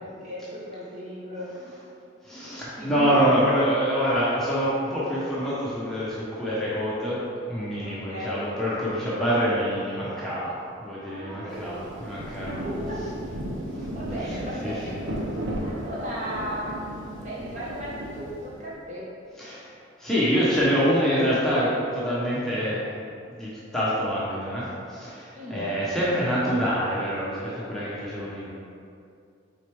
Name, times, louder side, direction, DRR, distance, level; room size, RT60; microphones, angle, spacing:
voice 1, 0.0-1.7 2.8-3.4 7.8-8.5 11.1-11.8 12.5-13.0 13.9-15.0 15.6-19.1 25.3-25.7, equal, 35° right, -7 dB, 1.3 m, -35 dB
voice 2, 2.2-7.2 7.5-12.5 13.7-13.9 14.2-15.0 19.4-19.7 20.0-22.8 23.4-28.5, equal, ahead, -10 dB, 0.9 m, -26 dB
Rain, 11.5-18.7, right 1 dB, 80° right, 0.8 m, -35 dB
6.4 x 4.3 x 3.5 m, 2.5 s
head